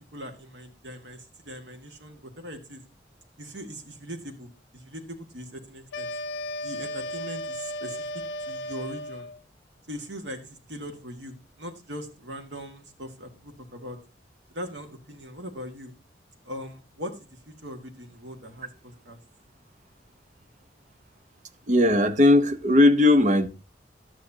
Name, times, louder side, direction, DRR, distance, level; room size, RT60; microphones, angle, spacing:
voice 1, 0.0-2.8 3.4-6.1 6.6-8.0 8.5-9.3 9.9-14.0 14.5-15.9 16.4-19.2, equal, 90° right, 1.9 m, -40 dB
sound 1, 5.9-9.4, left 1 dB, 85° left, 0.5 m, -35 dB
voice 2, 21.7-23.5, left 2 dB, 45° right, 0.8 m, -18 dB
12.5 x 9.4 x 2.8 m
head